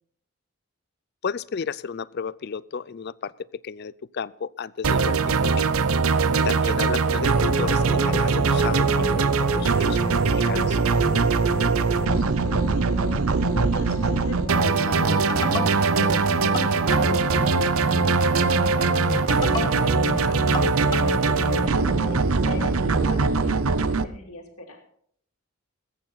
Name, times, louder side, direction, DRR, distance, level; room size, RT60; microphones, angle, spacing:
voice 1, 1.2-3.3 3.6-5.7 6.4-10.8, left 6 dB, 50° left, 20 dB, 0.4 m, -33 dB
sound 1, 4.8-24.0, right 4 dB, 80° right, 0.7 m, -22 dB
sound 2, 7.2-23.3, left 1 dB, 20° left, 0.9 m, -33 dB
voice 2, 11.2-13.0 13.5-18.9 19.3-20.6 21.1-24.8, left 2 dB, 85° left, 3 dB, 2.6 m, -41 dB
21.0 x 9.1 x 4.0 m, 0.64 s
head